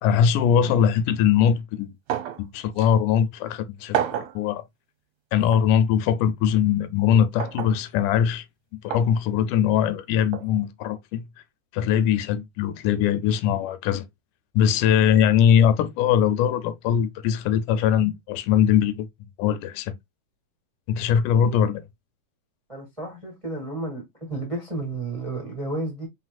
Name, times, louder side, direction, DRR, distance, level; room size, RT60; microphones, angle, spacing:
voice 1, 0.0-2.0 2.4-4.0 4.4-4.6 5.3-8.5 8.8-11.3 11.7-14.1 14.5-19.1 19.4-19.9 20.9-21.8, left 8 dB, 85° left, 2.1 m, -21 dB
sound 1, 2.1-2.4 2.8-2.9 3.9-4.4 5.5-5.7 7.4-7.8 8.9-9.1 10.3-10.5, right 10 dB, 70° right, 1.7 m, -28 dB
voice 2, 22.7-26.1, right 2 dB, 15° right, 1.0 m, -32 dB
4.5 x 4.1 x 2.3 m
omnidirectional pair, 3.7 m